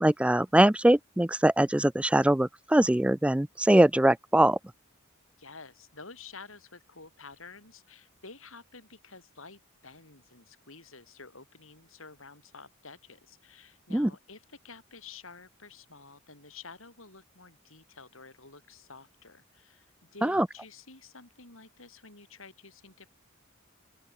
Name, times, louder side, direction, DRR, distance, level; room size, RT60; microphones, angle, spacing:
voice 1, 0.0-4.6 13.9-14.1 20.2-20.5, right 1 dB, 5° right, 0.4 m, -22 dB
voice 2, 5.4-23.1, left 4 dB, 75° left, 7.4 m, -50 dB
open air
head